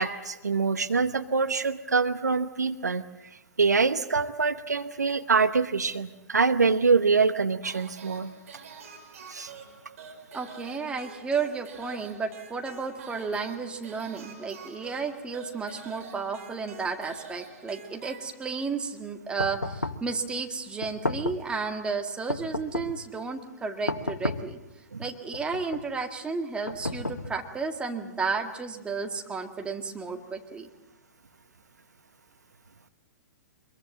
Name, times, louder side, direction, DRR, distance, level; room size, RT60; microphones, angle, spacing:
voice 1, 0.0-3.0 3.6-8.3 9.3-9.5 24.9-25.0, right 4 dB, 80° right, 12 dB, 1.0 m, -25 dB
sound 1, 7.6-18.7, right 5 dB, 55° right, 4.8 m, -47 dB
voice 2, 10.3-24.6 25.0-30.7, right 4 dB, 10° right, 4 dB, 2.0 m, -32 dB
sound 2, 19.4-20.1 20.8-21.5 22.3-23.1 23.9-24.6 25.3-25.9 26.7-27.6, left 2 dB, 85° left, 1.0 m, -33 dB
24.5 x 22.0 x 7.4 m, 1.0 s
figure-of-eight pair, 110°, 9 cm